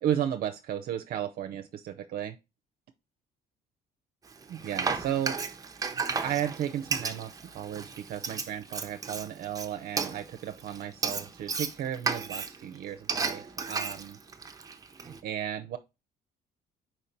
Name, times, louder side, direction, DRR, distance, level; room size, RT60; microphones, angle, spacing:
voice 1, 0.0-2.4 4.5-5.4 5.9-14.2 15.0-15.8, right 10 dB, 60° right, 0.6 m, -34 dB
Frying (food), 4.3-15.2, right 5 dB, 20° right, 0.7 m, -34 dB
4.6 x 4.4 x 5.1 m
cardioid pair, 110°, 17 cm